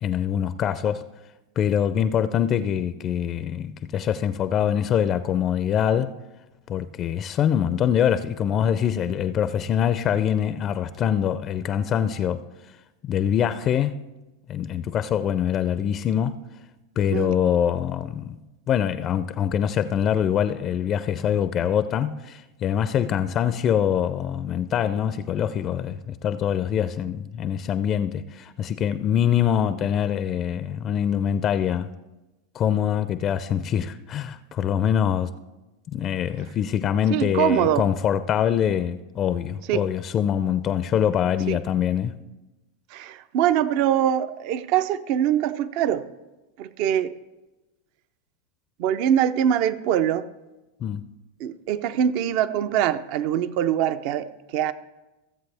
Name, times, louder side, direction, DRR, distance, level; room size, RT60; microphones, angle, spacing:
voice 1, 0.0-1.0 1.6-6.1 6.7-12.4 13.0-14.0 14.5-16.4 17.0-18.4 18.7-31.9 32.5-35.3 35.9-42.1 50.8-51.1, left 9 dB, 35° left, 0.4 m, -24 dB
voice 2, 37.1-37.9 39.7-39.8 41.5-41.6 42.9-46.1 46.6-47.1 48.8-50.3 51.4-54.7, right 10 dB, 55° right, 0.5 m, -23 dB
16.0 x 7.5 x 3.4 m
hypercardioid pair, 120°, 0 cm